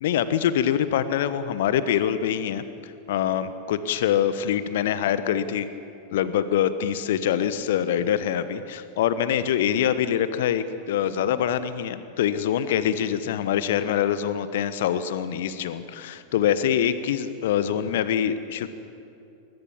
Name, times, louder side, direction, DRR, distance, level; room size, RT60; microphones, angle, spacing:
voice 1, 0.0-5.7 6.1-18.7, left 9 dB, 55° left, 13 dB, 1.1 m, -24 dB
21.5 x 20.5 x 7.1 m, 2.7 s
figure-of-eight pair, 90°, 0 cm